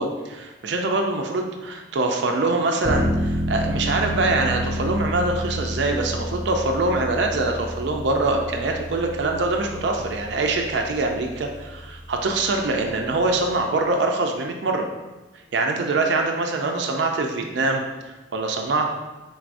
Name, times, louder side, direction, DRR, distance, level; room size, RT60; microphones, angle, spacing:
voice 1, 0.0-14.9 15.5-18.9, right 2 dB, 65° right, 2 dB, 0.4 m, -24 dB
sound 1, 2.8-13.6, equal, 25° right, 0.6 m, -30 dB
4.6 x 4.0 x 2.5 m, 1.1 s
head